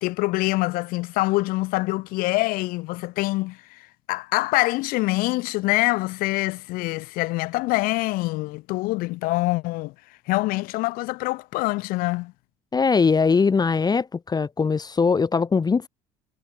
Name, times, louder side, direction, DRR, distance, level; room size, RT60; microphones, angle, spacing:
voice 1, 0.0-3.8 4.1-9.9 10.3-12.3, left 21 dB, 65° left, 1.4 m, -25 dB
voice 2, 12.7-15.9, left 5 dB, 25° left, 1.4 m, -21 dB
hypercardioid pair, 70°, 16 cm